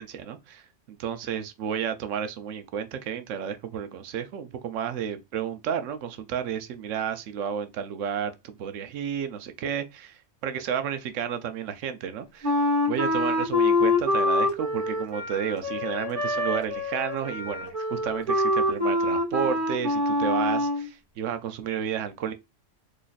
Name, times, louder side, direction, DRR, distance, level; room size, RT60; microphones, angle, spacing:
voice 1, 0.0-22.3, right 8 dB, 90° right, 1.0 m, -32 dB
Wind instrument woodwind instrument, 12.4-20.9, left 2 dB, 30° right, 1.4 m, -25 dB
4.0 x 3.0 x 2.4 m
omnidirectional pair, 1.3 m